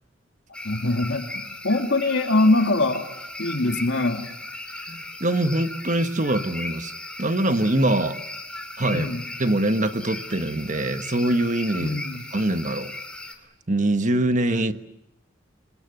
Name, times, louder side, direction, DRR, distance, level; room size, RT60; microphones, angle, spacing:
sound 1, 0.5-13.3, left 2 dB, 5° left, 2.8 m, -37 dB
voice 1, 0.6-3.0 3.4-4.2 8.9-9.2 11.8-12.2, left 2 dB, 70° left, 5 dB, 2.6 m, -23 dB
voice 2, 4.9-6.9 7.2-8.2 8.8-9.1 9.4-12.0 12.3-12.9 13.7-14.7, right 1 dB, 40° right, 9 dB, 1.3 m, -23 dB
27.0 x 22.0 x 8.0 m, 0.84 s
head